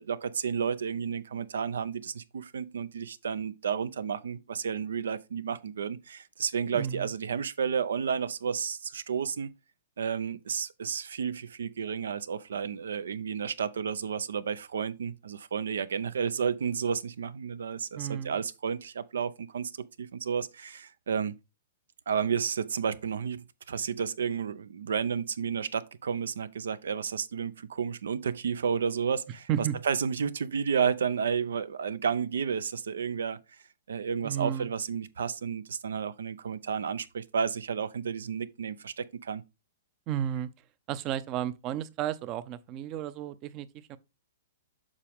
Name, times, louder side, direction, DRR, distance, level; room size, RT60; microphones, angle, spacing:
voice 1, 0.0-9.5 10.0-19.7 20.0-21.3 22.1-33.4 33.9-39.4, right 6 dB, 85° right, 0.6 m, -31 dB
voice 2, 6.7-7.1 18.0-18.4 29.5-29.8 34.2-34.7 40.1-40.5 40.9-44.0, right 10 dB, 30° right, 0.6 m, -33 dB
7.3 x 4.9 x 3.5 m
hypercardioid pair, 145°, 0 cm